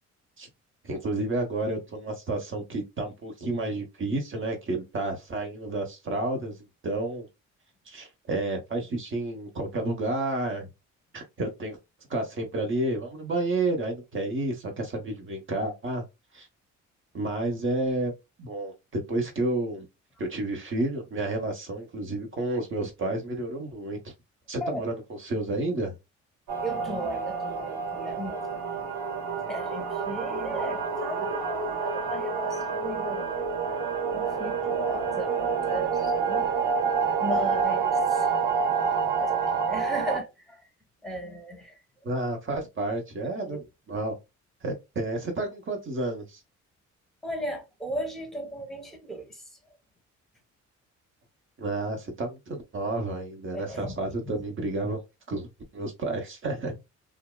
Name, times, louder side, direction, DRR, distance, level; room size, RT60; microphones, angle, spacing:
voice 1, 0.8-6.6 6.8-7.3 7.9-10.7 11.1-11.8 12.1-16.1 16.3-16.5 17.1-19.9 20.2-24.0 24.5-25.9 42.0-44.1 44.6-46.4 51.6-55.0 55.3-56.8, right 2 dB, 40° right, 1.0 m, -30 dB
sound 1, 26.5-40.2, right 5 dB, 85° right, 1.5 m, -28 dB
voice 2, 26.6-28.8 29.5-33.4 34.1-36.5 37.2-38.3 39.2-40.7 41.0-41.8 43.4-43.6 47.2-49.4 53.5-54.0, right 1 dB, ahead, 0.9 m, -36 dB
2.7 x 2.3 x 2.2 m
cardioid pair, 90°, 30 cm